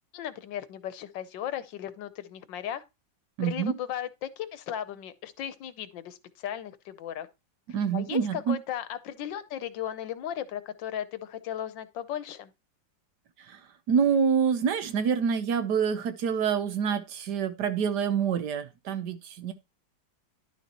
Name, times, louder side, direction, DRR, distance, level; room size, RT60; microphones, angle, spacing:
voice 1, 0.1-2.8 3.4-7.3 7.9-12.5, left 10 dB, 80° left, 1.5 m, -36 dB
voice 2, 3.4-3.7 7.7-8.6 13.4-13.6 13.9-19.5, right 7 dB, 65° right, 1.4 m, -27 dB
11.0 x 6.0 x 2.9 m
omnidirectional pair, 2.0 m